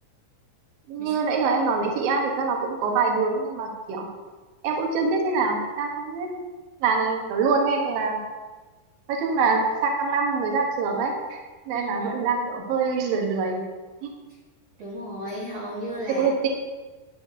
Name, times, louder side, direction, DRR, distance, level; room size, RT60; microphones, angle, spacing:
voice 1, 0.9-4.1 4.6-6.3 6.8-8.2 9.1-11.4 11.7-13.6 14.0-14.1 16.2-16.5, right 4 dB, 70° right, 1 dB, 2.9 m, -24 dB
voice 2, 11.7-12.2 14.8-16.3, equal, 50° right, -7 dB, 2.3 m, -35 dB
13.0 x 9.4 x 2.8 m, 1.3 s
omnidirectional pair, 4.7 m